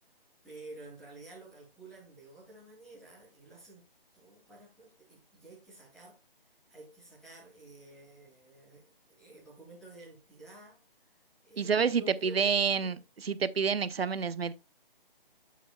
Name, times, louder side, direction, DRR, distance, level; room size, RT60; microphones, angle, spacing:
voice 1, 0.4-3.8 4.1-6.2 6.7-11.1 11.4-13.0, right 2 dB, ahead, 2.4 m, -51 dB
voice 2, 11.6-14.5, right 6 dB, 90° right, 0.7 m, -28 dB
8.6 x 7.2 x 2.2 m
figure-of-eight pair, 160°, 29 cm